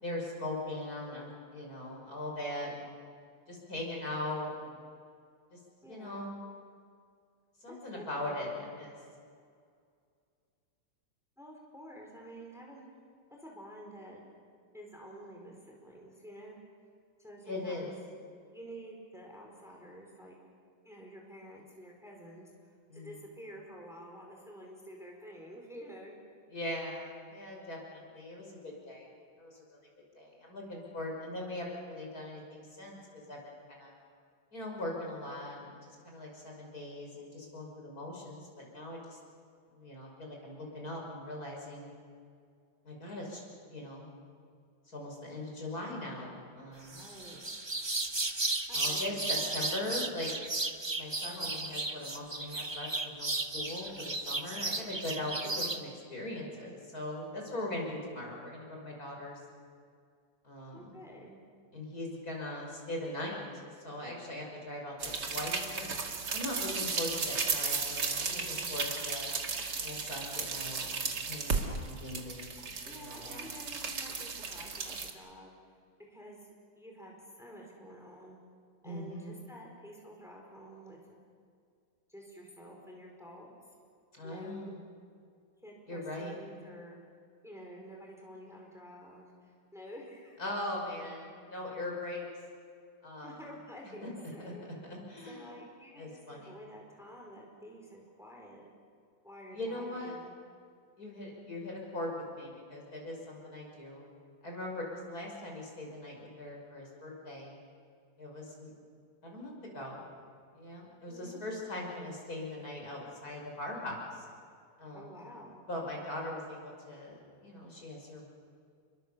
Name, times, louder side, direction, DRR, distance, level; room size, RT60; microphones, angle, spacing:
voice 1, 0.0-3.0 3.5-4.8 5.5-5.6 5.9-6.4 7.6-8.9 17.5-17.9 22.9-23.2 26.5-29.1 29.4-29.6 30.1-33.9 34.5-39.2 39.7-41.9 42.8-43.4 43.7-44.1 44.9-47.1 48.7-50.3 51.0-59.4 60.4-61.0 61.7-63.4 63.8-65.8 66.3-69.3 69.8-73.5 78.8-79.4 84.1-84.8 85.9-86.3 90.4-92.2 93.0-93.4 94.0-94.1 94.4-94.5 94.9-95.5 96.0-96.5 99.5-100.1 101.0-104.0 104.4-107.5 108.2-108.7 109.2-110.1 110.5-114.2 114.8-115.1 115.7-118.2, left 1 dB, 50° left, -1 dB, 6.1 m, -40 dB
voice 2, 5.8-6.3 7.7-8.6 11.4-12.9 13.4-14.2 14.7-16.6 17.2-17.9 18.5-20.4 20.8-26.2 46.9-47.5 48.7-49.6 55.4-55.7 60.7-61.4 68.3-68.8 72.8-75.5 76.1-78.4 78.8-81.2 82.1-83.5 84.2-84.8 85.6-87.0 87.4-90.4 93.2-94.7 95.3-98.7 99.2-100.3 111.1-111.5 114.9-115.6, equal, ahead, -1 dB, 4.4 m, -50 dB
sound 1, 46.9-55.8, right 2 dB, 15° right, 1.0 m, -34 dB
sound 2, 65.0-75.1, right 4 dB, 65° right, 2.5 m, -35 dB
29.5 x 23.0 x 6.9 m, 2.2 s
omnidirectional pair, 2.0 m